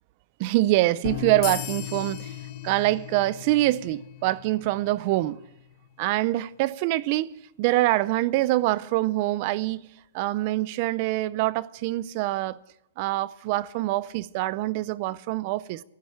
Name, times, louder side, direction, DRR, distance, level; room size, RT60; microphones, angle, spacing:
voice 1, 0.4-2.4 2.6-5.4 6.0-7.3 7.6-9.8 10.1-12.6 13.0-15.8, right 17 dB, 40° right, 0.5 m, -25 dB
sound 1, 1.0-6.3, left 11 dB, 55° left, 1.1 m, -38 dB
sound 2, 1.4-4.5, left 13 dB, 30° left, 1.0 m, -40 dB
13.5 x 9.0 x 9.9 m
hypercardioid pair, 155°, 0 cm